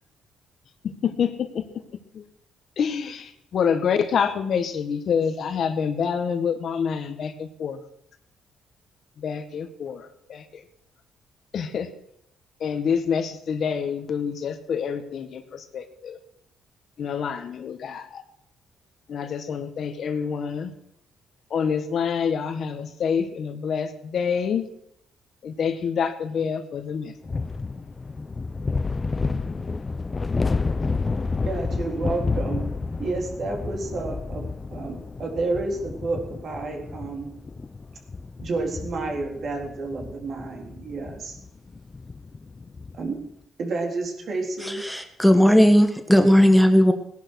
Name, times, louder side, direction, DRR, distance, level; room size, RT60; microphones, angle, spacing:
voice 1, 0.8-1.8 2.1-2.2 2.8-7.8 9.2-10.6 11.5-11.9 12.6-16.2 17.0-18.2 19.1-20.7 21.5-24.7 25.4-27.1, left 7 dB, 60° left, 8 dB, 1.6 m, -27 dB
sound 1, 27.2-43.1, left 4 dB, 30° left, 0.7 m, -30 dB
voice 2, 31.5-32.6 33.0-37.3 38.4-41.4 43.0-43.2 43.6-44.8, right 3 dB, 55° right, 2 dB, 3.8 m, -30 dB
voice 3, 44.8-46.9, equal, ahead, 7 dB, 1.5 m, -16 dB
17.5 x 11.0 x 6.5 m, 0.74 s
cardioid pair, 90°, 0 cm